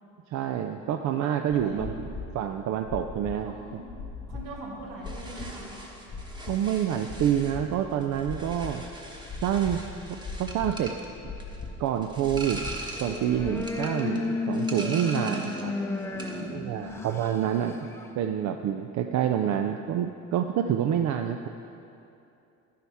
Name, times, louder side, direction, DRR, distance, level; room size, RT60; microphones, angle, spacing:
voice 1, 0.3-3.5 6.5-8.8 9.4-11.0 11.8-12.6 13.0-15.7 16.5-17.8 18.1-21.5, right 9 dB, 60° right, 6 dB, 0.5 m, -27 dB
voice 2, 1.5-2.1 3.4-3.8 4.3-5.7 16.2-17.0, right 1 dB, 85° right, -4 dB, 2.5 m, -41 dB
sound 1, 1.6-13.5, left 4 dB, 35° left, 1.0 m, -40 dB
sound 2, 5.0-15.7 16.0-16.5, right 2 dB, 15° right, 1.1 m, -42 dB
sound 3, 12.9-18.1, left 3 dB, 10° left, 0.6 m, -33 dB
11.0 x 10.0 x 3.5 m, 2.7 s
cardioid pair, 120°, 32 cm